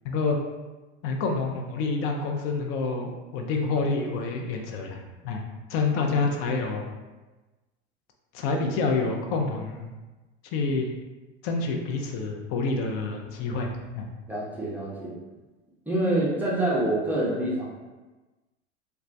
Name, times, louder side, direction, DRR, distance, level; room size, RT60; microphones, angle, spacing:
voice 1, 0.0-0.4 1.0-5.4 5.7-6.9 8.3-9.9 10.5-10.9 11.4-14.1, left 3 dB, 40° left, 2 dB, 0.5 m, -28 dB
voice 2, 14.3-15.1 15.9-17.6, right 1 dB, 5° right, -7 dB, 0.6 m, -26 dB
2.2 x 2.1 x 2.6 m, 1.2 s
hypercardioid pair, 90°, 35 cm